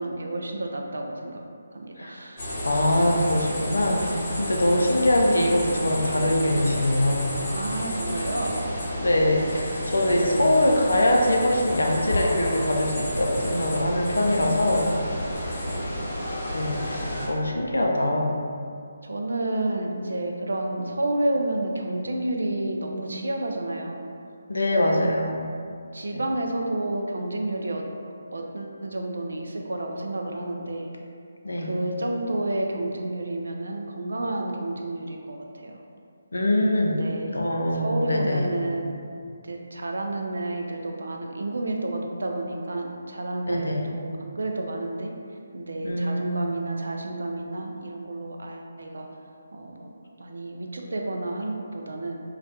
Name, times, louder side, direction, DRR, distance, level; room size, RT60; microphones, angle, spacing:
voice 1, 0.0-1.4 1.7-2.4 7.5-8.7 15.7-16.0 17.1-17.5 19.0-24.1 25.9-27.9 28.3-30.9 31.6-35.8 36.8-37.4 37.7-39.0 39.4-45.1 45.5-49.1 49.5-49.9 50.2-52.2, right 2 dB, 75° right, 2 dB, 0.3 m, -30 dB
voice 2, 2.0-2.3 2.6-7.4 9.0-15.0 16.5-18.4 24.5-25.8 26.1-26.2 31.4-31.7 36.3-37.0 37.3-38.5 43.5-43.9 45.8-46.6, left 1 dB, 80° left, 0 dB, 0.4 m, -23 dB
sound 1, 2.4-17.3, left 1 dB, 40° left, 0.9 m, -31 dB
2.3 x 2.1 x 2.6 m, 2.3 s
figure-of-eight pair, 150°, 0 cm